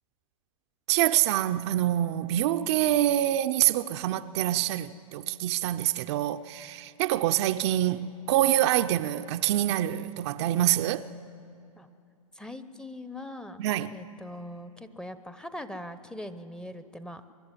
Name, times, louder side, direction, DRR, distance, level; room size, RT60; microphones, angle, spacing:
voice 1, 0.9-11.1 13.6-13.9, right 13 dB, 50° right, 0.6 m, -26 dB
voice 2, 12.3-13.6 13.9-17.2, left 1 dB, 5° left, 0.8 m, -41 dB
24.5 x 11.5 x 9.8 m
hypercardioid pair, 115°, 19 cm